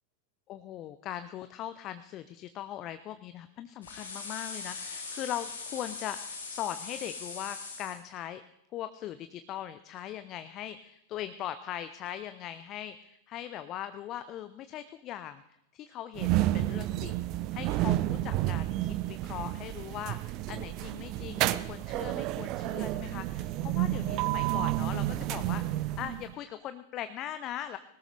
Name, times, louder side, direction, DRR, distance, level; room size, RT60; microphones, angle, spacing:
voice 1, 0.5-8.4 8.7-15.4 15.7-27.8, left 11 dB, 35° left, 11 dB, 0.6 m, -40 dB
sound 1, 3.8-8.0, left 4 dB, 70° left, 3.0 m, -41 dB
sound 2, 16.2-26.3, right 15 dB, 40° right, 0.5 m, -30 dB
21.0 x 18.5 x 3.4 m, 0.81 s
figure-of-eight pair, 90°, 0 cm